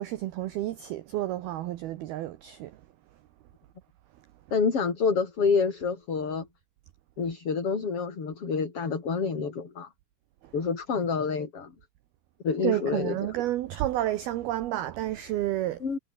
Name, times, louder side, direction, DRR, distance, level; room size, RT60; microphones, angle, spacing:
voice 1, 0.0-2.7 12.6-15.8, right 14 dB, 75° right, 2.4 m, -30 dB
voice 2, 4.5-6.5 7.2-9.9 10.5-11.7 12.4-13.3 15.8-16.0, left 5 dB, 30° left, 4.3 m, -28 dB
omnidirectional pair, 5.7 m